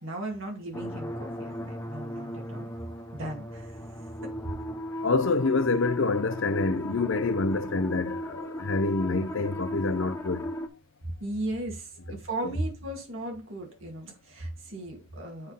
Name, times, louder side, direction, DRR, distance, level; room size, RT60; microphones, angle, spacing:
voice 1, 0.0-2.7 3.1-3.9 4.2-4.3 11.2-15.5, right 1 dB, 60° right, 2.3 m, -36 dB
sound 1, 0.7-10.7, equal, 15° left, 0.8 m, -36 dB
voice 2, 5.0-10.5 12.4-12.5, left 3 dB, 55° left, 0.6 m, -27 dB
7.9 x 3.7 x 5.6 m
head